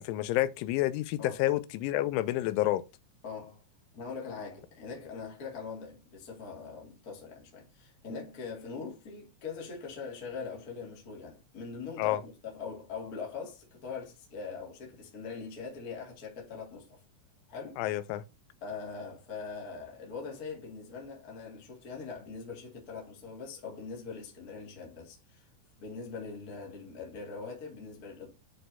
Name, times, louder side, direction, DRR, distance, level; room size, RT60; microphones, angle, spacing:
voice 1, 0.0-2.8 12.0-12.2 17.8-18.2, left 15 dB, 90° left, 3.0 m, -29 dB
voice 2, 3.2-3.6 3.9-17.0 17.5-17.8 18.6-25.4 25.8-28.3, left 5 dB, 55° left, 1.0 m, -42 dB
8.5 x 4.4 x 2.6 m
omnidirectional pair, 5.4 m